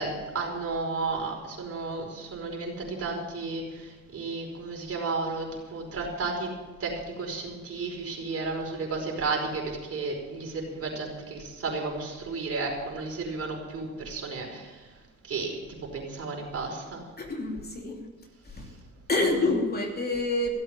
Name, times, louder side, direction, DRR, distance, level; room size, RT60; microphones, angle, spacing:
voice 1, 0.0-6.5 6.8-14.9 15.2-15.5 15.8-17.1 19.3-19.5, right 3 dB, 50° right, 0 dB, 5.0 m, -33 dB
voice 2, 17.2-18.1 18.4-18.7 19.1-20.5, left 2 dB, 30° left, 1 dB, 3.0 m, -27 dB
16.0 x 8.2 x 8.8 m, 1.3 s
cardioid pair, 90°, 30 cm